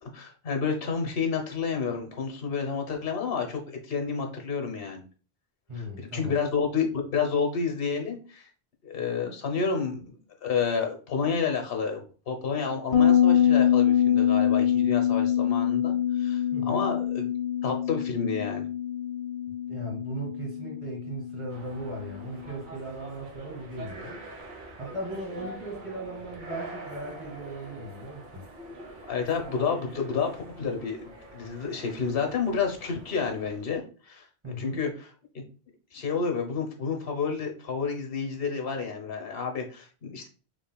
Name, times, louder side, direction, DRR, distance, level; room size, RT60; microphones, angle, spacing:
voice 1, 0.0-5.0 5.8-8.5 8.8-10.1 10.4-16.4 16.7-17.3 17.6-18.7 29.1-34.3 34.6-35.1 35.9-40.3, left 5 dB, 60° left, 3 dB, 1.2 m, -30 dB
voice 2, 5.7-6.4 16.5-16.9 19.7-24.2 24.8-28.5 34.4-34.8, right 1 dB, 30° right, -2 dB, 1.9 m, -37 dB
Bass guitar, 12.9-22.3, left 10 dB, 35° left, 0.6 m, -25 dB
sound 1, 21.5-33.7, right 1 dB, 50° right, 1.1 m, -44 dB
6.3 x 3.1 x 2.3 m, 0.37 s
omnidirectional pair, 1.1 m